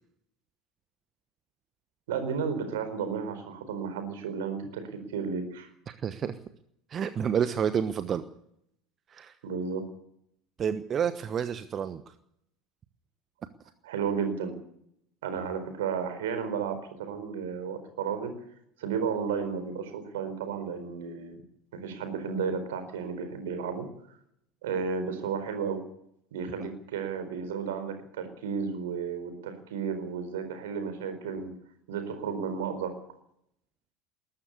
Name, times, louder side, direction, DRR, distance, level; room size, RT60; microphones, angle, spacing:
voice 1, 2.1-5.7 9.4-9.9 13.8-14.6 15.2-18.3 18.8-21.4 21.7-23.9 24.6-25.8 26.3-31.5 31.9-32.9, right 6 dB, 65° right, 8 dB, 4.4 m, -33 dB
voice 2, 5.9-6.4 6.9-8.2 9.1-9.4 10.6-12.1 26.6-26.7, right 8 dB, 30° right, 12 dB, 1.1 m, -29 dB
21.0 x 13.0 x 9.9 m, 0.73 s
figure-of-eight pair, 70°, 0 cm